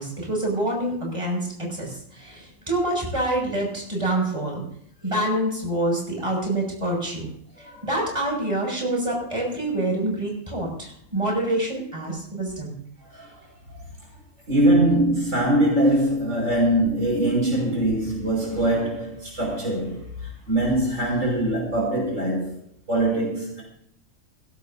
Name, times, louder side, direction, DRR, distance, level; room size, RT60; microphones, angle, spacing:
voice 1, 0.0-4.6 5.0-7.3 7.8-12.7, right 1 dB, 20° right, 6.8 m, -26 dB
voice 2, 7.6-7.9 13.1-13.8 14.5-22.6 22.9-23.6, right 1 dB, 65° right, 6.2 m, -23 dB
20.5 x 17.0 x 2.8 m
omnidirectional pair, 1.4 m